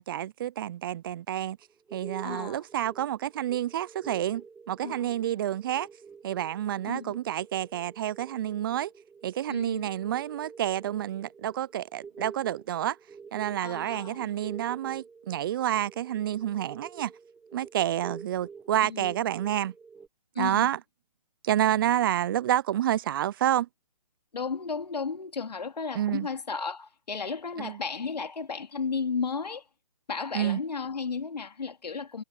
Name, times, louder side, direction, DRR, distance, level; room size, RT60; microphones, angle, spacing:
voice 1, 0.0-1.6 1.9-5.9 6.2-8.9 9.2-13.0 13.3-17.1 17.5-19.7 20.4-20.8 21.4-23.7 25.9-26.3 27.6-27.8 30.3-30.6, right 12 dB, 35° right, 0.5 m, -29 dB
sound 1, 1.6-20.1, right 5 dB, 5° right, 1.6 m, -47 dB
voice 2, 2.2-2.6 4.8-5.1 6.8-7.1 9.5-9.9 13.6-14.3 18.8-19.1 20.3-20.7 24.3-29.6 30.1-32.2, left 5 dB, 80° left, 2.6 m, -34 dB
hypercardioid pair, 145°, 21 cm